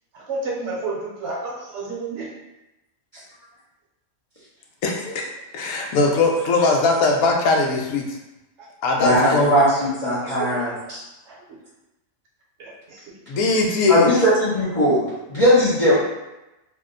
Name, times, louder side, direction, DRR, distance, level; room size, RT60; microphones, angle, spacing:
voice 1, 0.1-2.3 8.9-9.0 9.7-9.9 10.2-10.5 11.3-11.4 12.6-13.1 13.5-13.6, right 3 dB, 60° right, -4 dB, 1.0 m, -31 dB
voice 2, 4.8-8.2 8.8-9.4 13.3-14.1, left 3 dB, 90° left, 1 dB, 1.1 m, -20 dB
voice 3, 9.0-11.0 13.9-15.9, equal, 35° left, -10 dB, 0.7 m, -19 dB
2.8 x 2.1 x 3.7 m, 0.99 s
omnidirectional pair, 1.5 m